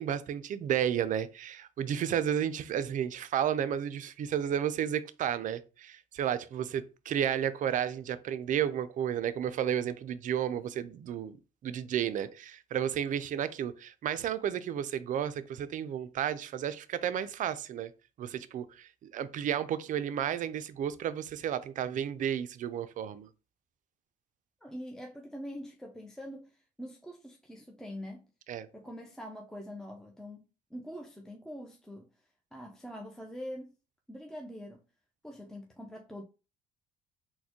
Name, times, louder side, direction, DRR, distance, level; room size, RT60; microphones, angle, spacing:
voice 1, 0.0-11.4 11.6-17.9 18.2-23.3 28.5-28.7, right 9 dB, 50° right, 0.4 m, -32 dB
voice 2, 24.6-28.3 28.7-30.4 30.7-32.1 32.5-33.7 34.1-34.8 35.2-36.2, equal, 5° left, 0.6 m, -44 dB
4.0 x 2.1 x 2.9 m
hypercardioid pair, 60°, 17 cm